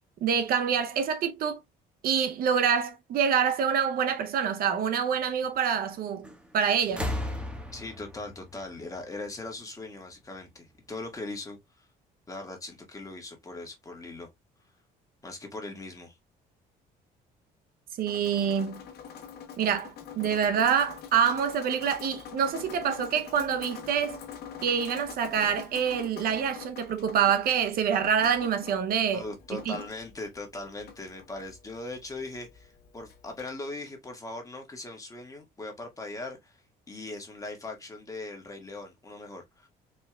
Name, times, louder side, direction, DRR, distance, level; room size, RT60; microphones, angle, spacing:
voice 1, 0.2-1.6 2.0-6.3 6.5-7.1 18.0-18.8 19.6-24.2 24.6-29.2 29.7-29.8, right 7 dB, 60° right, 0.6 m, -26 dB
sound 1, 6.2-6.5 6.8-9.6 10.7-10.8, left 1 dB, 5° right, 1.2 m, -36 dB
voice 2, 7.7-11.9 12.3-14.3 15.2-16.2 29.1-39.7, left 2 dB, 20° left, 1.6 m, -40 dB
Drip, 18.1-33.5, left 7 dB, 70° left, 1.1 m, -45 dB
4.5 x 3.4 x 2.2 m
cardioid pair, 110°, 17 cm